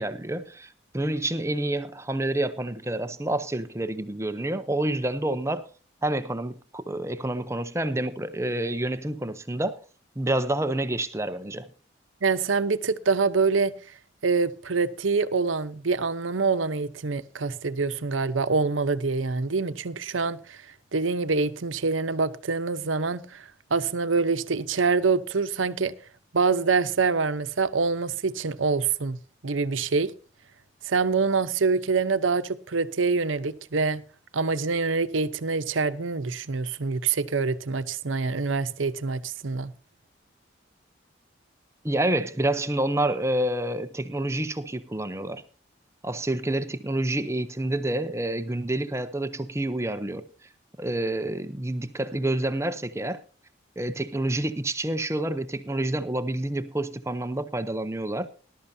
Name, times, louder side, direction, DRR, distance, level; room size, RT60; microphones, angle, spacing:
voice 1, 0.0-5.6 6.0-9.8 10.2-11.7 41.8-45.4 46.0-50.2 50.8-53.2 53.8-58.3, right 1 dB, 15° right, 0.7 m, -28 dB
voice 2, 12.2-13.7 14.2-20.6 20.9-23.4 23.7-25.9 26.3-29.2 29.4-30.1 30.9-34.0 34.3-39.7, right 4 dB, 90° right, 0.8 m, -25 dB
19.5 x 12.0 x 2.7 m
head